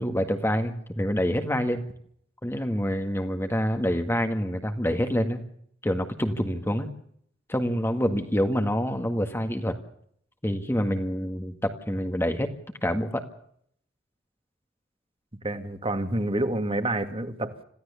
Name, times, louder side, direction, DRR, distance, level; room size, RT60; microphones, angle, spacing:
voice 1, 0.0-1.8 2.4-5.4 5.8-6.9 7.5-9.8 10.4-12.5 12.8-13.2, equal, 10° left, 6 dB, 1.8 m, -26 dB
voice 2, 15.4-17.6, right 1 dB, 30° right, 8 dB, 2.3 m, -28 dB
27.0 x 16.5 x 7.0 m, 0.66 s
head